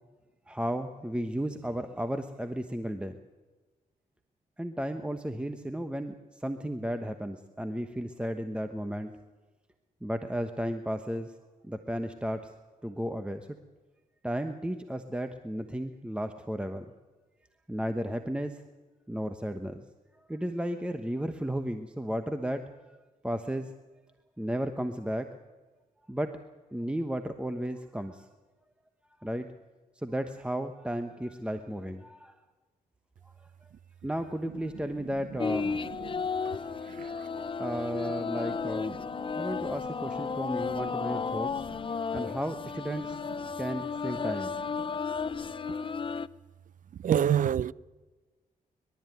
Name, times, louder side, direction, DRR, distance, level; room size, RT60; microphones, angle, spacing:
voice 1, 0.5-3.2 4.6-9.1 10.0-11.3 11.6-12.5 12.8-13.5 14.2-16.9 17.7-18.6 19.1-19.8 20.3-23.0 23.2-23.7 24.4-25.4 26.1-26.4 26.7-28.3 29.2-29.5 30.0-32.4 33.2-33.3 34.0-35.9 37.0-39.0 39.3-41.6 42.1-44.8, equal, 5° right, 1.1 m, -34 dB
sound 1, 35.4-46.3, left 5 dB, 35° left, 0.6 m, -33 dB
voice 2, 36.9-37.5 44.9-45.0 45.7-45.8 47.0-47.7, right 9 dB, 60° right, 0.5 m, -28 dB
22.0 x 13.0 x 9.3 m
cardioid pair, 80°, 15 cm